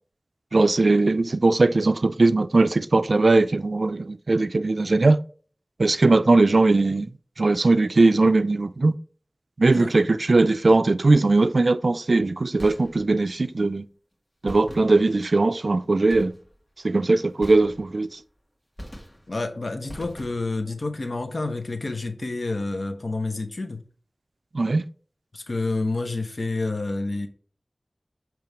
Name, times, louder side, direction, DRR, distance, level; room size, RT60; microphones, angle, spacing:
voice 1, 0.5-5.2 5.8-7.1 7.4-8.9 9.6-13.8 14.4-16.3 16.8-18.2 24.5-24.8, right 3 dB, 85° right, 0.4 m, -19 dB
sound 1, 12.6-13.3 14.5-15.4 16.1-16.7 17.4-18.2 18.8-19.5 19.9-20.7, equal, 25° left, 1.6 m, -43 dB
voice 2, 19.3-23.8 25.3-27.3, left 2 dB, 80° left, 0.9 m, -29 dB
6.8 x 3.1 x 4.5 m
wide cardioid pair, 45°, 0 cm